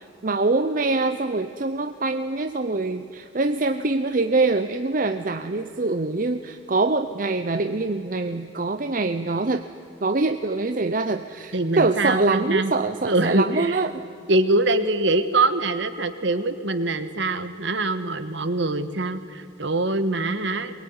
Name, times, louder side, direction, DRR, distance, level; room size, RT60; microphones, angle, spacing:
voice 1, 0.2-9.6 10.0-13.9, right 3 dB, 40° right, 8 dB, 0.7 m, -24 dB
voice 2, 11.5-12.7 13.0-13.8 14.3-20.8, right 2 dB, 60° right, 11 dB, 1.4 m, -24 dB
22.5 x 21.5 x 9.6 m, 2.6 s
head